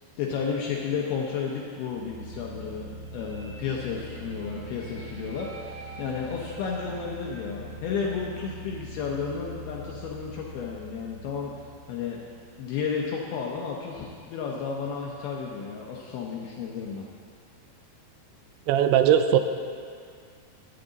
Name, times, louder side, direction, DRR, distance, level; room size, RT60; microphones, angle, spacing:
voice 1, 0.2-12.2 12.6-17.0, left 6 dB, 75° left, -2 dB, 2.3 m, -32 dB
sound 1, 1.9-12.8, right 1 dB, 55° right, 3.1 m, -42 dB
voice 2, 18.7-19.4, right 10 dB, 85° right, 8 dB, 2.8 m, -19 dB
14.0 x 9.8 x 4.0 m, 2.1 s
omnidirectional pair, 5.3 m